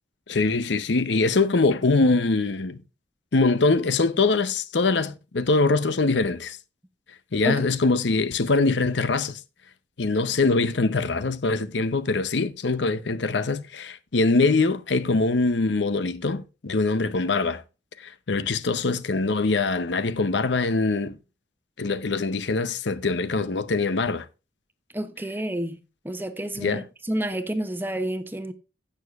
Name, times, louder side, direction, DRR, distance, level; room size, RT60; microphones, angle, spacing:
voice 1, 0.3-2.8 3.3-6.6 7.3-9.4 10.0-17.6 18.0-21.2 21.8-24.3 26.6-26.9, left 3 dB, 75° left, 0.7 m, -23 dB
voice 2, 24.9-25.8 26.0-28.5, right 1 dB, 10° right, 0.9 m, -29 dB
16.0 x 6.5 x 2.4 m
head